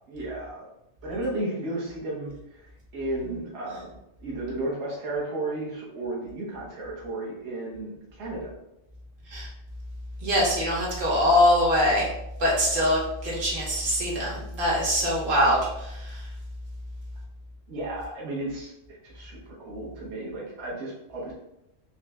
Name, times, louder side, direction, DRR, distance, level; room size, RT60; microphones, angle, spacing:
voice 1, 0.1-0.7 1.0-3.9 4.2-8.5 17.7-18.7 19.0-21.3, right 2 dB, 65° right, -4 dB, 1.1 m, -33 dB
voice 2, 10.2-12.1 12.4-16.3, left 1 dB, 85° right, -5 dB, 1.6 m, -23 dB
4.3 x 2.1 x 3.3 m, 0.84 s
omnidirectional pair, 1.3 m